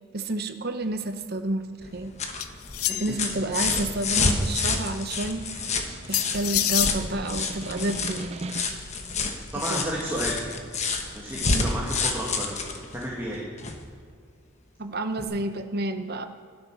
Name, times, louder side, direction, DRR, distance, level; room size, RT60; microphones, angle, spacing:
voice 1, 0.1-2.1 3.0-5.7 6.1-8.4 9.7-9.8 11.5-11.8 14.8-16.3, right 2 dB, 45° right, 8 dB, 0.9 m, -30 dB
sound 1, 1.8-13.9 15.2-15.3, left 4 dB, 30° left, 1.1 m, -29 dB
sound 2, 2.4-3.3 6.1-7.0, left 13 dB, 85° left, 0.6 m, -26 dB
voice 2, 2.9-3.3 9.5-10.5 11.1-12.5 12.9-13.5, right 1 dB, 10° right, -5 dB, 2.0 m, -32 dB
Snare drum, 4.5-9.0, right 2 dB, 30° right, 0.5 m, -40 dB
13.5 x 12.0 x 6.1 m, 2.2 s
head